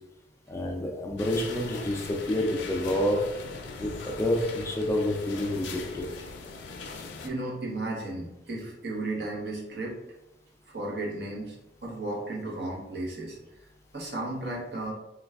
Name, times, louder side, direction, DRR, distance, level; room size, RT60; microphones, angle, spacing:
voice 1, 0.5-3.2 3.8-6.1, left 1 dB, 15° left, 1 dB, 0.3 m, -28 dB
sound 1, 1.2-7.3, left 4 dB, 90° left, 0.4 m, -40 dB
voice 2, 7.2-10.0 10.7-11.6 11.8-13.4 13.9-14.9, right 2 dB, 65° right, -2 dB, 0.8 m, -34 dB
3.2 x 2.3 x 3.4 m, 0.95 s
head